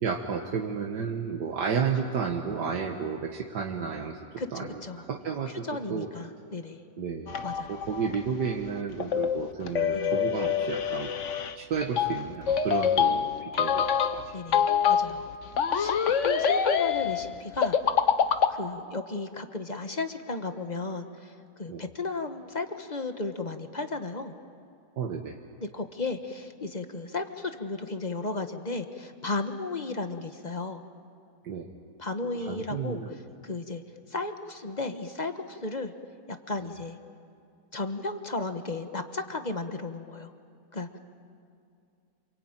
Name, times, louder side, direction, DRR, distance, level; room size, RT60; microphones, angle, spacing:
voice 1, 0.0-4.2 4.5-5.6 5.9-6.1 7.0-7.4 7.7-11.1 11.6-13.8 14.1-14.3 21.7-21.8 25.0-25.4 31.4-31.7 32.2-33.2, right 6 dB, 80° right, 2 dB, 1.9 m, -32 dB
voice 2, 4.4-5.0 5.6-6.8 7.4-7.7 9.9-10.1 14.3-15.3 15.7-17.8 18.5-21.3 21.6-24.3 25.6-30.8 32.0-33.0 33.4-33.8 34.1-35.9 36.5-37.0 37.7-40.3 40.7-40.9, left 3 dB, 30° left, 7 dB, 1.2 m, -34 dB
sound 1, 7.3-18.5, left 7 dB, 50° left, 1.2 m, -26 dB
27.5 x 24.0 x 9.0 m, 2.5 s
omnidirectional pair, 1.8 m